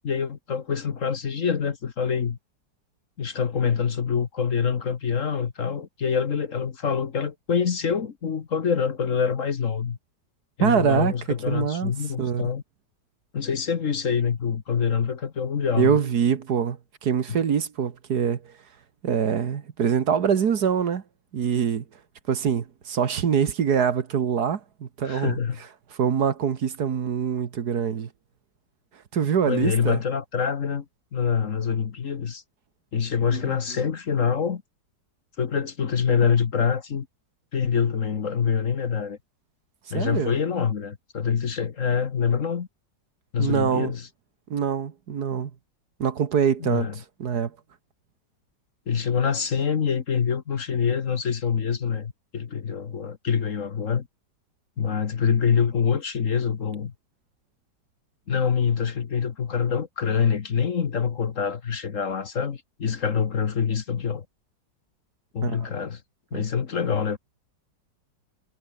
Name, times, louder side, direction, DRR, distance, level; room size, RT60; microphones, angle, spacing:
voice 1, 0.0-2.4 3.2-10.0 10.6-12.6 13.3-16.0 17.3-17.4 25.0-25.6 29.5-30.8 31.1-32.4 32.9-34.6 35.4-37.1 37.5-39.2 39.9-42.7 43.3-44.1 46.6-46.9 48.9-54.1 54.8-56.9 58.3-64.2 65.3-66.0 66.3-67.2, left 6 dB, 50° left, 1.5 m, -25 dB
voice 2, 10.6-11.1 11.5-11.9 12.2-12.4 15.8-18.5 19.0-21.0 21.3-21.8 22.3-25.4 26.0-28.1 29.1-30.0 33.3-33.6 39.9-40.3 43.4-43.9 44.5-45.5 46.0-47.5 65.4-65.7 66.3-66.4, right 7 dB, 60° right, 1.9 m, -24 dB
omnidirectional pair, 1.9 m